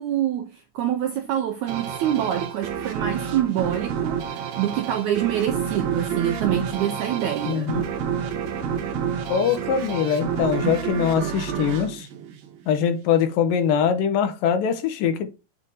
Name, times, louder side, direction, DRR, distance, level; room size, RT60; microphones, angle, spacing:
voice 1, 0.0-7.7 10.6-10.8, right 10 dB, 85° right, 1.7 m, -26 dB
sound 1, 1.7-12.9, right 7 dB, 65° right, 2.1 m, -29 dB
voice 2, 7.5-7.8 9.3-12.1 12.7-15.3, left 7 dB, 80° left, 2.5 m, -22 dB
7.5 x 3.4 x 4.0 m
omnidirectional pair, 4.1 m